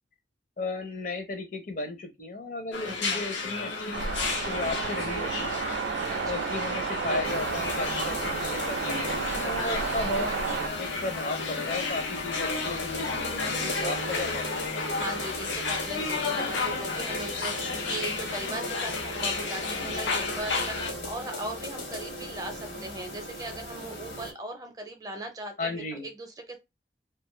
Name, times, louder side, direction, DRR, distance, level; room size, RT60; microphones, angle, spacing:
voice 1, 0.6-4.0 4.4-5.6 6.2-8.8 9.1-10.3 10.8-14.8 25.6-26.1, left 2 dB, 45° left, 0.6 m, -35 dB
sound 1, 2.7-20.9, left 4 dB, 85° left, 0.7 m, -32 dB
voice 2, 2.8-3.2 6.1-6.5 9.4-9.8 13.6-14.3 14.9-26.6, right 2 dB, 20° right, 0.5 m, -39 dB
sound 2, 3.9-10.7, right 6 dB, 70° right, 0.3 m, -32 dB
sound 3, 7.2-24.3, left 1 dB, 70° left, 1.1 m, -37 dB
2.4 x 2.3 x 3.0 m
head